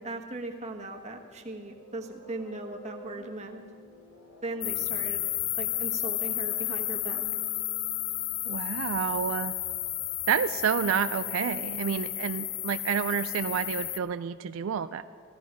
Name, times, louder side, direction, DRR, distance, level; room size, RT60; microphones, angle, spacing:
voice 1, 0.0-3.6 4.4-5.2 5.6-7.2, right 2 dB, 35° right, 3 dB, 1.2 m, -38 dB
sound 1, 1.2-9.0, left 1 dB, 80° left, 1.9 m, -52 dB
sound 2, 4.6-14.0, left 14 dB, 45° left, 0.4 m, -32 dB
voice 2, 8.5-9.5 10.3-15.0, right 7 dB, 85° right, 12 dB, 0.3 m, -29 dB
15.5 x 13.5 x 4.9 m, 2.2 s
head